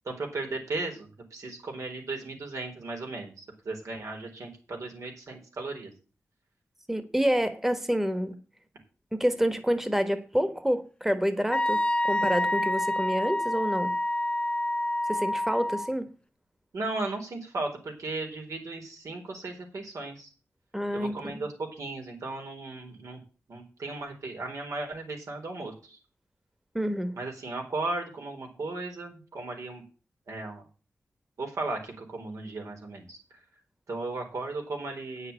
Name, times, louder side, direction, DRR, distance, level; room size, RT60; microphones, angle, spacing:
voice 1, 0.0-5.9 16.7-20.3 20.9-23.2 23.5-26.0 27.2-29.8 30.3-30.6 31.4-33.2 33.9-35.3, right 2 dB, 85° right, 2 dB, 4.3 m, -36 dB
voice 2, 6.9-8.4 9.1-13.9 15.1-16.1 20.7-21.4 26.7-27.1, equal, 5° right, 10 dB, 1.2 m, -28 dB
Wind instrument woodwind instrument, 11.5-15.9, left 1 dB, 20° left, 0.6 m, -27 dB
9.4 x 6.7 x 8.1 m, 0.35 s
wide cardioid pair, 95°, 5 cm